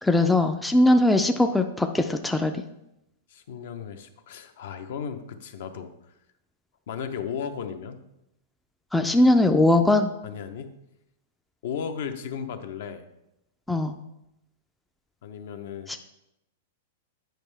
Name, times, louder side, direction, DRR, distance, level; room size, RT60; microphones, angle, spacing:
voice 1, 0.0-2.5 8.9-10.1 13.7-13.9 15.9-16.0, left 1 dB, 5° left, 5 dB, 0.3 m, -20 dB
voice 2, 3.3-5.9 6.9-8.0 10.2-10.7 11.6-13.0 15.2-16.0, left 7 dB, 65° left, 8 dB, 0.7 m, -35 dB
9.0 x 5.3 x 3.3 m, 0.85 s
supercardioid pair, 160°, 0 cm